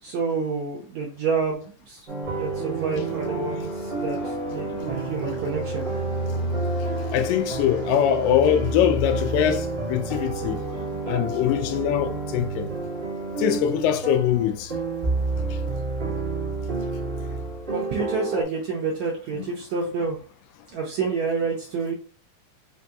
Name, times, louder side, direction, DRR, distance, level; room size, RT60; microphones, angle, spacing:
voice 1, 0.0-2.1 2.4-5.9 17.7-20.2 20.7-21.9, right 4 dB, 75° right, 1.7 m, -28 dB
sound 1, 2.1-18.4, right 3 dB, 55° right, 0.6 m, -30 dB
Fixed-wing aircraft airplane, 2.2-15.7, right 1 dB, 60° left, 1.7 m, -35 dB
voice 2, 7.1-10.6 11.1-12.7 13.4-14.7 19.4-19.5, left 9 dB, 85° left, 2.2 m, -22 dB
5.3 x 2.7 x 2.3 m
omnidirectional pair, 3.9 m